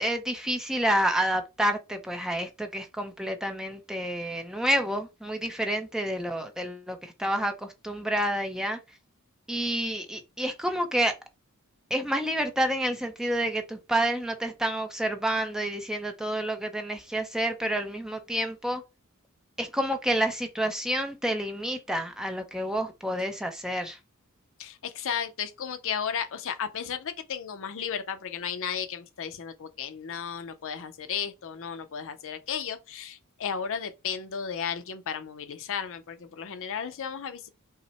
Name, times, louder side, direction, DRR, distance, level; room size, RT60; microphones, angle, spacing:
voice 1, 0.0-8.8 9.5-11.1 11.9-18.8 19.6-24.0, right 1 dB, 5° right, 0.6 m, -29 dB
voice 2, 24.6-37.5, left 7 dB, 60° left, 0.6 m, -34 dB
5.5 x 2.1 x 4.2 m
head